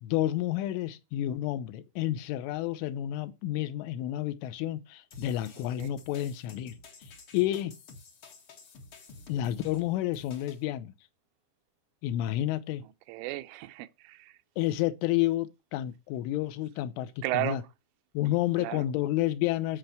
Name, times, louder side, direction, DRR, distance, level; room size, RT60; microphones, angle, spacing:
voice 1, 0.0-7.8 9.3-10.9 12.0-12.9 14.6-17.6 18.2-19.8, left 14 dB, 85° left, 3.4 m, -30 dB
sound 1, 5.1-10.6, left 3 dB, 70° left, 1.3 m, -51 dB
voice 2, 13.1-14.4 17.2-17.6 18.6-18.9, right 18 dB, 90° right, 3.3 m, -34 dB
10.5 x 5.7 x 7.7 m
omnidirectional pair, 5.5 m